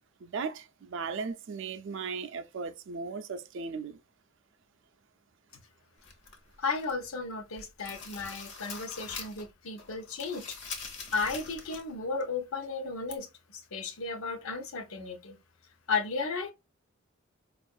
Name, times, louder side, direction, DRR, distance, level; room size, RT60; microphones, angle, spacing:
voice 1, 0.2-4.0, right 5 dB, 60° right, 0.4 m, -37 dB
sound 1, 6.0-7.1 7.4-9.5 9.8-11.9 12.2-12.3 13.1-13.2, left 4 dB, 60° left, 0.9 m, -43 dB
voice 2, 6.6-10.6 11.1-15.4 15.9-16.5, left 4 dB, 85° left, 0.7 m, -34 dB
4.4 x 2.4 x 2.3 m
head